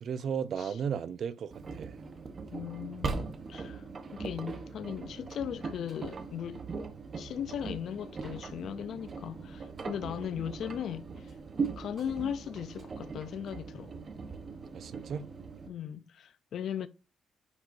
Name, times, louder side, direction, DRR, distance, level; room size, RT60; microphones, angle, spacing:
voice 1, 0.0-2.0 10.1-10.3 14.7-15.3, right 7 dB, 60° right, 0.6 m, -35 dB
Engine, 1.5-15.7, right 4 dB, 40° right, 1.1 m, -40 dB
voice 2, 2.5-3.8 4.1-6.6 7.1-11.1 11.8-13.9 15.7-16.9, left 9 dB, 65° left, 0.6 m, -38 dB
9.5 x 4.9 x 2.7 m
cardioid pair, 90°, 0 cm